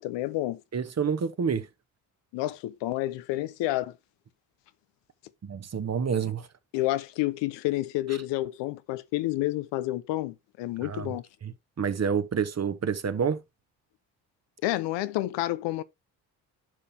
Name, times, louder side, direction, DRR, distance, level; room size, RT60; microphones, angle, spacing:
voice 1, 0.0-0.6 2.3-3.9 6.7-11.2 14.6-15.8, left 16 dB, 80° left, 0.7 m, -29 dB
voice 2, 0.7-1.7 5.4-6.5 10.8-11.1 11.4-11.5 11.8-13.4, right 6 dB, 35° right, 1.2 m, -28 dB
11.0 x 5.5 x 2.8 m
supercardioid pair, 60°, 42 cm